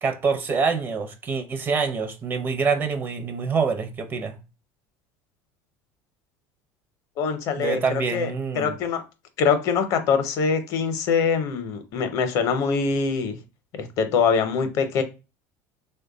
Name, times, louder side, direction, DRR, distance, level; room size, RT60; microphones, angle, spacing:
voice 1, 0.0-4.4 7.6-8.8, right 5 dB, 30° right, 0.5 m, -26 dB
voice 2, 7.2-9.0 9.4-13.4 13.8-15.0, left 6 dB, 55° left, 0.6 m, -24 dB
3.2 x 2.2 x 3.7 m
supercardioid pair, 125°, 7 cm